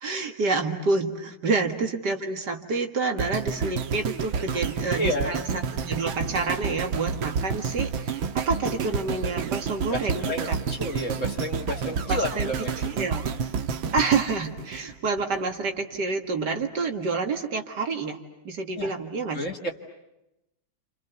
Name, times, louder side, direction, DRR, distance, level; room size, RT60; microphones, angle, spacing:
voice 1, 0.0-10.6 12.1-12.5 12.8-13.3 13.9-18.2 18.4-19.4, right 4 dB, 60° right, 5 dB, 2.4 m, -28 dB
sound 1, 3.2-15.4 15.9-16.0, right 6 dB, 85° right, 2.0 m, -30 dB
voice 2, 5.0-5.3 9.9-12.7 18.7-18.9 19.3-19.7, left 1 dB, 40° left, 3 dB, 2.6 m, -31 dB
29.0 x 29.0 x 7.0 m, 0.90 s
omnidirectional pair, 2.1 m